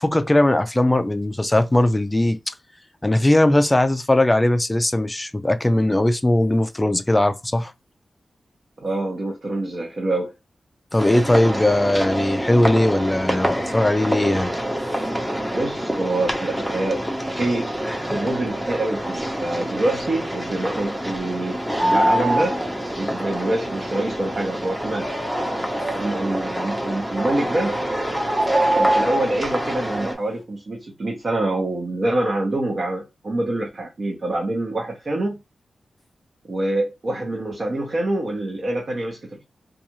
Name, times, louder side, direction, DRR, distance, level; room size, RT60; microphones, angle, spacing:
voice 1, 0.0-2.4 3.0-7.7 10.9-14.5, left 1 dB, 15° left, 0.4 m, -19 dB
voice 2, 8.8-10.3 15.5-17.0 17.3-17.7 18.1-22.6 23.0-25.1 25.9-27.8 28.7-35.4 36.5-39.4, right 2 dB, 50° right, 0.8 m, -25 dB
sound 1, 11.0-30.1, equal, 5° right, 0.7 m, -27 dB
sound 2, 21.8-22.7 27.3-27.4 28.1-29.4, right 1 dB, 25° right, 1.1 m, -22 dB
2.5 x 2.4 x 2.9 m
cardioid pair, 70°, 0 cm